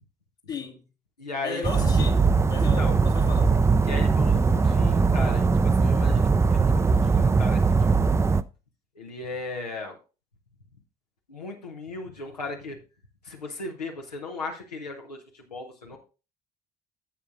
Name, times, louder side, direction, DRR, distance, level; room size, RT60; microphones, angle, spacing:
voice 1, 0.5-0.9 1.4-3.6, left 6 dB, 60° left, 1.5 m, -35 dB
voice 2, 1.2-1.7 2.6-3.0 3.8-8.1 8.9-10.0 11.3-12.8 13.2-16.0, left 3 dB, 90° left, 0.7 m, -36 dB
sound 1, 1.6-8.4, right 4 dB, 15° right, 0.4 m, -21 dB
11.0 x 7.3 x 2.5 m
figure-of-eight pair, 50°, 20 cm